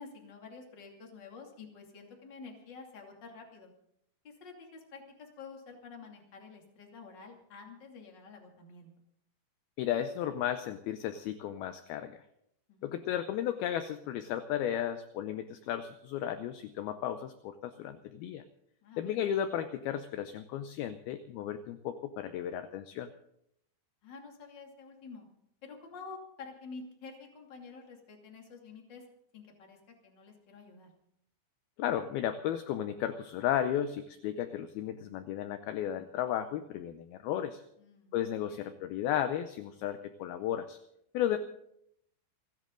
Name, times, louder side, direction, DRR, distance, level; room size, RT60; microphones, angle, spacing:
voice 1, 0.0-3.7 4.2-8.9 12.7-13.0 18.8-19.2 24.0-25.3 25.6-29.1 29.3-30.9 37.8-38.6, left 4 dB, 30° left, 2 dB, 2.6 m, -49 dB
voice 2, 9.8-12.2 12.8-18.4 19.0-23.1 31.8-37.6 38.1-40.8 41.1-41.4, left 10 dB, 80° left, 9 dB, 2.4 m, -34 dB
29.5 x 10.5 x 3.8 m, 0.75 s
omnidirectional pair, 5.0 m